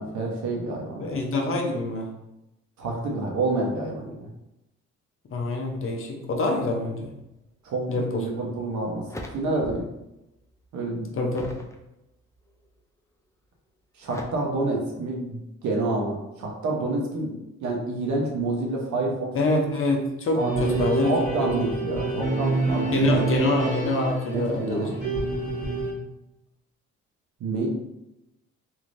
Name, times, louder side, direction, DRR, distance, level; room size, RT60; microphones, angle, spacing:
voice 1, 0.0-1.2 2.8-4.3 7.6-9.0 9.3-9.8 10.7-11.1 14.0-17.3 17.6-19.3 20.4-23.1 24.3-24.9 27.4-27.7, right 2 dB, 70° right, -1 dB, 0.9 m, -28 dB
voice 2, 1.0-2.1 5.3-7.1 7.9-8.3 11.2-11.5 19.3-21.1 21.6-21.7 22.9-25.0, left 2 dB, 45° left, 1 dB, 0.7 m, -25 dB
sound 1, 8.7-10.0 10.4-11.7 12.3-12.8 14.1-14.3, left 1 dB, 10° left, 0.4 m, -41 dB
sound 2, 20.4-25.9, right 3 dB, 25° right, 1.4 m, -27 dB
3.2 x 2.8 x 2.5 m, 0.90 s
cardioid pair, 90°, 30 cm